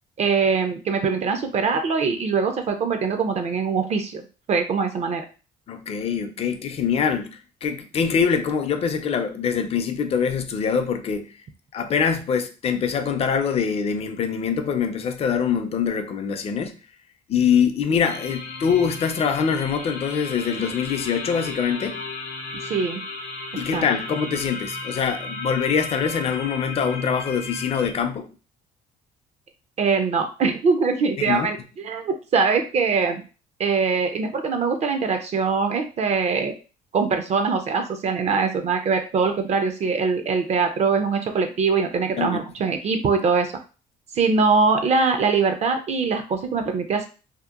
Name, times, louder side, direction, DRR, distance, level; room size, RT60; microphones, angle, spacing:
voice 1, 0.2-4.2 4.5-5.2 22.6-23.0 23.7-23.8 29.8-33.2 33.6-36.5 36.9-43.5 44.1-47.1, right 5 dB, 40° right, 0.4 m, -22 dB
voice 2, 5.7-11.3 11.7-16.8 17.3-22.0 23.6-28.3 31.2-31.5 42.2-42.4, left 6 dB, 35° left, 0.4 m, -24 dB
sound 1, 18.0-27.9, left 3 dB, 80° left, 0.6 m, -34 dB
2.8 x 2.0 x 2.3 m
cardioid pair, 110°, 17 cm